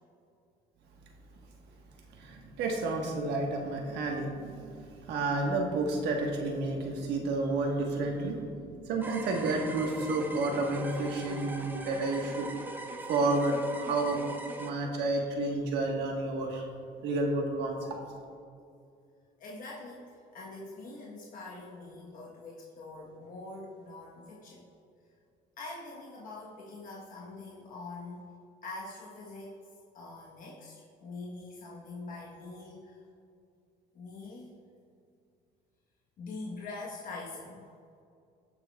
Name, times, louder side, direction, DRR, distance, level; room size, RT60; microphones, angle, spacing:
voice 1, 2.1-12.5 13.1-14.2 14.6-16.6 17.0-18.0, right 2 dB, 80° right, 1 dB, 1.3 m, -31 dB
sound 1, 9.0-14.7, right 1 dB, 10° right, 0.7 m, -41 dB
voice 2, 19.4-24.6 25.6-28.3 28.6-29.7 29.9-33.0 33.9-34.5 36.2-37.6, left 2 dB, 55° left, -4 dB, 1.2 m, -44 dB
17.0 x 6.1 x 2.3 m, 2.5 s
cardioid pair, 110°, 17 cm